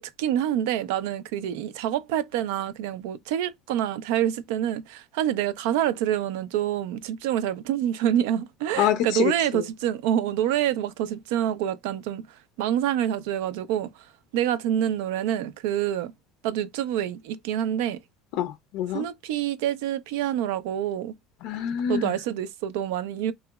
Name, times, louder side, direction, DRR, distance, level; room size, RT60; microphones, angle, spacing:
voice 1, 0.0-12.2 12.6-13.9 14.3-16.1 16.4-18.0 18.9-21.1 21.9-23.3, right 11 dB, 85° right, 0.3 m, -27 dB
voice 2, 8.8-9.6 18.4-19.0 21.4-22.1, left 10 dB, 70° left, 0.4 m, -26 dB
2.9 x 2.8 x 2.2 m
cardioid pair, 140°, 0 cm